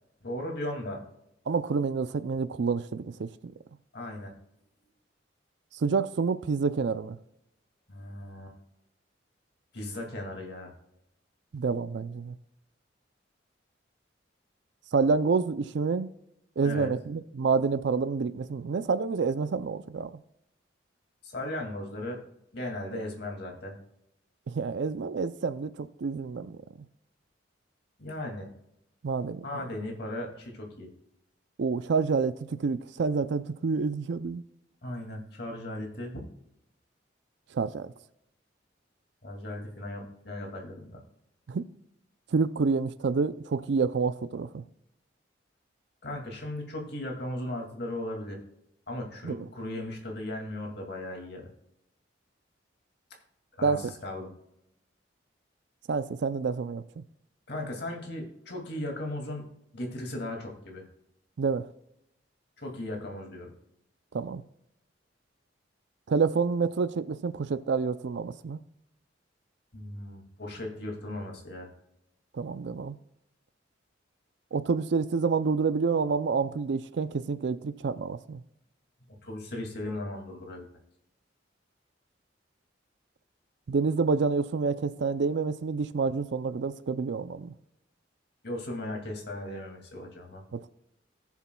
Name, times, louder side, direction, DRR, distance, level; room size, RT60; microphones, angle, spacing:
voice 1, 0.2-1.0 3.9-4.3 7.9-8.5 9.7-10.7 16.6-16.9 21.2-22.2 22.5-23.7 28.0-28.5 29.4-30.9 34.8-36.2 39.2-41.0 46.0-48.4 48.9-51.5 53.6-54.3 57.5-59.4 59.7-60.8 62.6-63.5 69.7-71.7 79.2-80.6 88.4-90.4, left 1 dB, 60° left, 2.3 m, -37 dB
voice 2, 1.5-3.5 5.7-7.2 11.5-12.4 14.9-16.1 16.6-20.1 24.5-26.6 29.0-29.4 31.6-34.4 37.5-37.9 41.5-41.6 42.3-44.6 49.2-49.5 53.6-53.9 55.9-57.0 61.4-61.7 64.1-64.4 66.1-68.6 72.3-73.0 74.5-78.4 83.7-87.5 90.5-90.7, right 4 dB, 65° right, 0.4 m, -28 dB
19.0 x 7.2 x 2.3 m
head